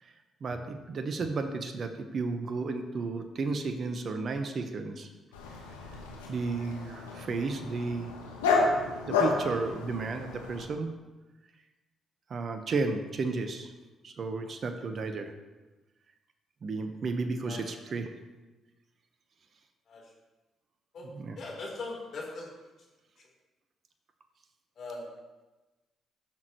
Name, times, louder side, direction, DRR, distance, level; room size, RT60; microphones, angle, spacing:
voice 1, 0.4-5.1 6.3-8.1 9.1-10.9 12.3-13.7 14.0-15.3 16.6-18.1 21.0-21.4, right 3 dB, 50° right, 7 dB, 1.1 m, -33 dB
Dog, 5.3-10.7, left 4 dB, 90° left, 1.1 m, -31 dB
voice 2, 21.4-22.5 24.8-25.0, left 3 dB, 60° left, -3 dB, 3.5 m, -39 dB
16.0 x 6.6 x 3.1 m, 1.1 s
hypercardioid pair, 45°, 0 cm